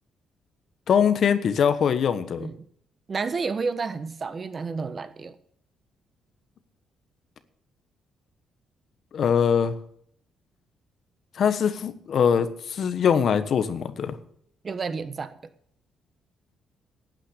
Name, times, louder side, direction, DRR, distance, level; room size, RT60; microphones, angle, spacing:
voice 1, 0.9-2.5 9.1-9.7 11.4-14.2, left 7 dB, 60° left, 11 dB, 1.3 m, -22 dB
voice 2, 3.1-5.3 14.6-15.4, right 4 dB, 40° right, 12 dB, 1.2 m, -30 dB
12.0 x 9.2 x 6.6 m, 0.64 s
cardioid pair, 90°, 0 cm